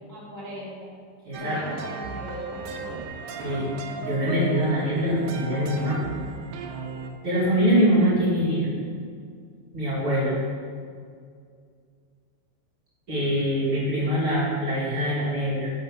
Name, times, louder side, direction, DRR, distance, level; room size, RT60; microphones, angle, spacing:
voice 1, 0.1-0.9 1.4-3.0, equal, 45° left, -7 dB, 0.3 m, -39 dB
voice 2, 1.3-1.6 3.4-3.6 4.0-6.0 7.2-8.7 9.7-10.3 13.1-15.7, equal, 40° right, -9 dB, 2.2 m, -23 dB
sound 1, 1.3-7.1, right 4 dB, 80° right, 2.4 m, -36 dB
6.8 x 5.5 x 7.3 m, 2.2 s
omnidirectional pair, 5.3 m